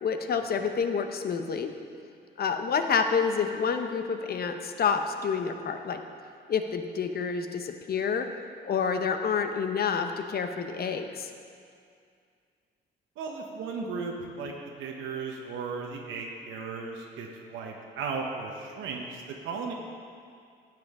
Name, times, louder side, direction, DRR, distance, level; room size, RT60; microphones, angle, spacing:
voice 1, 0.0-1.7 2.4-6.0 6.5-8.3 8.6-11.3, left 6 dB, 50° left, 7 dB, 0.8 m, -28 dB
voice 2, 13.2-14.5 14.8-19.7, right 4 dB, 90° right, 0 dB, 0.9 m, -36 dB
11.5 x 7.6 x 3.6 m, 2.3 s
cardioid pair, 90°, 20 cm